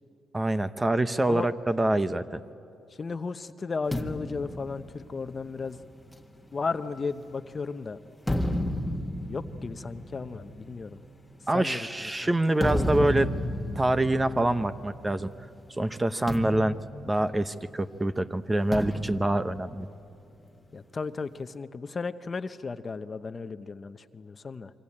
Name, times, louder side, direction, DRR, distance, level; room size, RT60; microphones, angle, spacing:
voice 1, 0.3-2.4 11.5-13.4 13.8-15.3 15.8-16.8 17.1-19.9, right 1 dB, 15° right, 12 dB, 0.8 m, -26 dB
voice 2, 3.0-5.8 6.5-8.0 9.3-11.0 11.5-11.9 20.7-24.7, left 4 dB, 35° left, 11 dB, 0.9 m, -34 dB
sound 1, 3.9-7.5 8.0-15.4 15.7-15.9 16.3-17.9 18.7-20.5, left 1 dB, 5° left, 1.7 m, -33 dB
27.0 x 24.0 x 8.7 m, 2.7 s
cardioid pair, 90°, 0 cm